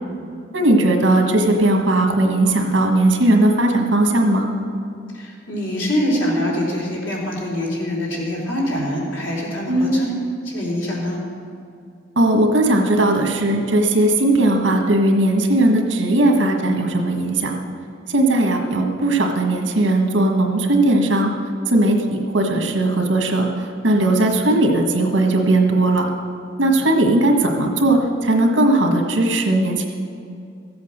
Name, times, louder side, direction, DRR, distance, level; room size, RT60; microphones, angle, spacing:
voice 1, 0.5-4.5 9.7-10.0 12.1-17.5 18.1-21.3 21.7-26.1 26.6-29.9, right 1 dB, 75° right, 3 dB, 1.6 m, -18 dB
voice 2, 5.1-10.1 10.4-11.2, equal, 90° left, -4 dB, 3.7 m, -24 dB
14.5 x 8.1 x 6.5 m, 2.4 s
head